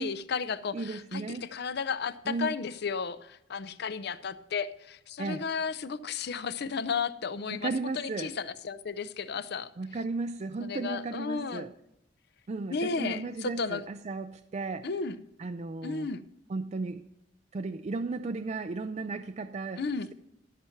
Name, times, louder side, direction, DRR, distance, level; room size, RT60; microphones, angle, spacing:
voice 1, 0.0-9.7 10.6-11.7 12.7-13.8 14.8-15.2 15.8-16.2 19.8-20.1, left 5 dB, 60° left, 14 dB, 0.6 m, -33 dB
voice 2, 0.7-1.5 2.3-2.5 5.2-5.5 7.5-8.3 9.8-11.7 12.5-14.9 15.4-16.1 16.5-17.0 17.5-19.8, right 3 dB, 35° right, 9 dB, 0.4 m, -35 dB
13.5 x 5.8 x 5.8 m, 0.84 s
head